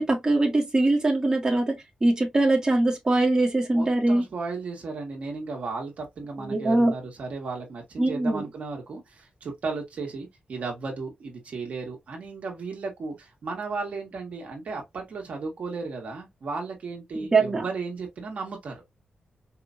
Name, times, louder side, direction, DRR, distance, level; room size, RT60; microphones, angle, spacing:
voice 1, 0.0-4.3 6.4-6.9 8.0-8.4 17.1-17.6, right 2 dB, 25° right, 1.6 m, -22 dB
voice 2, 3.7-18.7, right 4 dB, 70° right, 1.6 m, -35 dB
4.9 x 2.9 x 2.6 m
wide cardioid pair, 120°, 3 cm